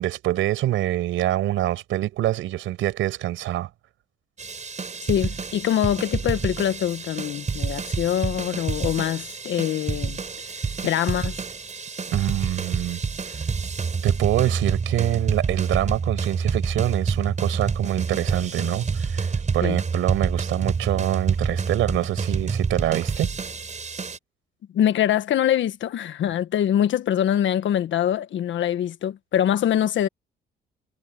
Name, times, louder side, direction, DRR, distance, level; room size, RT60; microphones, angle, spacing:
voice 1, 0.0-3.7 12.1-13.0 14.0-23.3, right 14 dB, 90° right, 5.9 m, -25 dB
sound 1, 4.4-24.2, right 5 dB, 35° right, 5.0 m, -28 dB
voice 2, 5.0-10.2 10.8-11.4 19.6-19.8 24.7-30.1, left 10 dB, 70° left, 1.5 m, -24 dB
cardioid pair, 90°, 20 cm